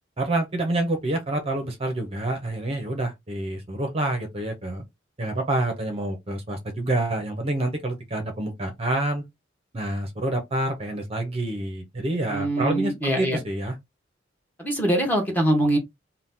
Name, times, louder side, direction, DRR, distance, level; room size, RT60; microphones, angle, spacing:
voice 1, 0.2-4.8 5.2-9.2 9.7-13.8, right 2 dB, 30° right, 0.7 m, -27 dB
voice 2, 12.3-13.4 14.6-15.8, right 1 dB, 10° left, 1.0 m, -23 dB
2.8 x 2.2 x 3.5 m
head